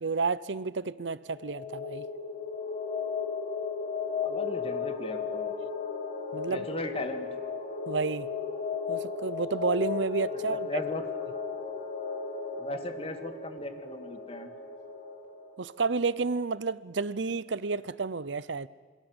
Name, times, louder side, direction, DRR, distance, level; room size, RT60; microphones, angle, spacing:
voice 1, 0.0-2.1 6.3-6.7 7.9-8.3 8.9-10.7 15.6-18.7, right 4 dB, 85° right, 0.8 m, -30 dB
sound 1, 1.3-15.6, left 5 dB, 50° left, 6.7 m, -35 dB
voice 2, 4.2-5.5 6.5-7.3 10.5-11.0 12.6-14.5, left 2 dB, 35° left, 2.1 m, -37 dB
27.5 x 22.5 x 8.1 m
head